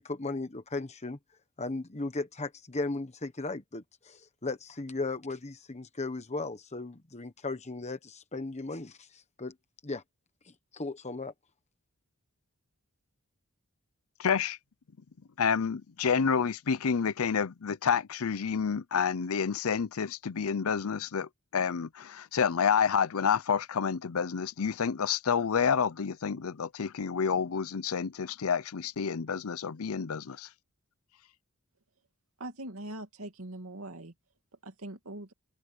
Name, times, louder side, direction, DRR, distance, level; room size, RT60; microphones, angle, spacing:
voice 1, 0.0-1.2 1.6-9.5 9.8-10.0 10.7-11.3, left 3 dB, 30° left, 1.2 m, -36 dB
voice 2, 14.2-14.6 15.4-30.5, left 6 dB, 80° left, 0.6 m, -29 dB
voice 3, 32.4-34.1 34.6-35.3, right 1 dB, 80° right, 2.5 m, -42 dB
open air
head